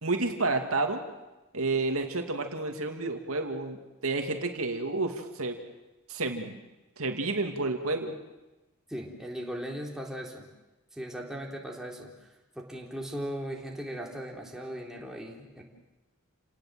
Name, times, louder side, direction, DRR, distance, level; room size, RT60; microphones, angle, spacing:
voice 1, 0.0-1.0 1.5-3.8 4.0-5.6 6.1-6.6 7.0-8.2, right 3 dB, 80° right, 4 dB, 2.6 m, -30 dB
voice 2, 8.9-10.5 10.9-12.1 12.6-15.6, equal, ahead, -1 dB, 3.8 m, -38 dB
29.5 x 19.0 x 7.7 m, 1.1 s
head